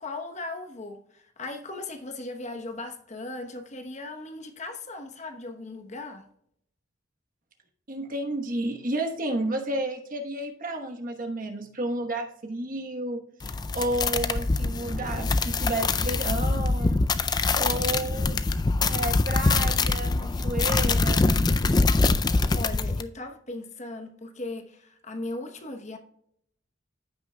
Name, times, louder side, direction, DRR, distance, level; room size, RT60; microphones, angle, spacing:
voice 1, 0.0-6.3 22.5-26.0, left 2 dB, 35° left, 1.0 m, -38 dB
voice 2, 7.9-17.0 17.6-18.4 18.8-21.5, right 1 dB, 45° right, 1.1 m, -31 dB
sound 1, 13.4-23.0, left 3 dB, 20° left, 0.3 m, -24 dB
14.5 x 6.0 x 2.2 m
head